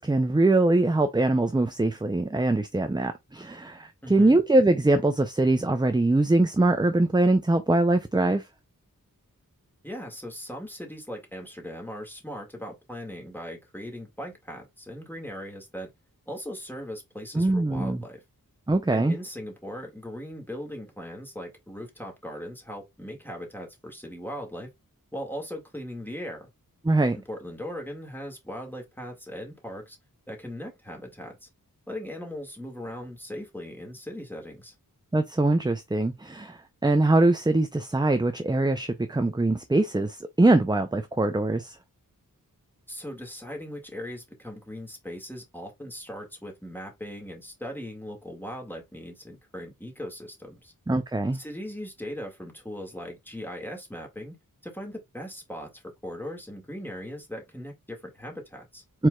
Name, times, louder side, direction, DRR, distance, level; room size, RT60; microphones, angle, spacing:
voice 1, 0.0-8.5 17.3-18.0 18.7-19.2 26.8-27.2 35.1-41.8 50.9-51.4 59.0-59.1, right 2 dB, 10° right, 0.5 m, -23 dB
voice 2, 4.0-4.4 9.8-15.9 16.3-18.2 18.9-24.7 25.1-26.5 27.1-30.0 30.3-31.5 31.9-34.8 42.9-50.7 51.3-54.4 54.6-58.8, equal, 5° left, 1.9 m, -39 dB
4.6 x 4.4 x 2.3 m
wide cardioid pair, 55°, 36 cm